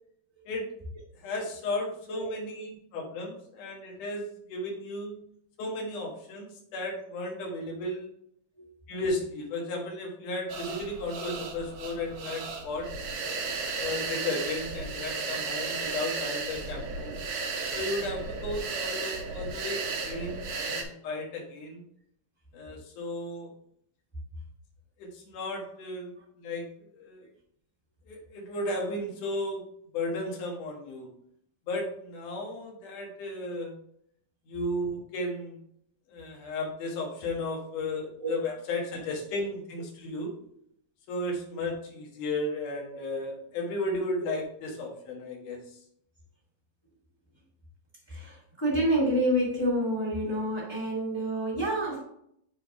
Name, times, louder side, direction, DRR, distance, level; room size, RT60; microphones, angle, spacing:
voice 1, 1.1-5.2 5.6-8.1 8.9-12.9 13.7-17.2 17.7-21.9 22.5-23.5 25.0-27.3 28.1-29.6 29.9-31.1 31.7-33.7 34.5-35.6 36.1-40.3 41.1-45.8, left 2 dB, 65° left, -1 dB, 2.7 m, -34 dB
sound 1, 10.5-20.8, right 4 dB, 70° right, 1.6 m, -34 dB
voice 2, 48.1-52.0, right 1 dB, 15° left, -6 dB, 0.9 m, -28 dB
6.8 x 3.6 x 4.7 m, 0.70 s
omnidirectional pair, 4.1 m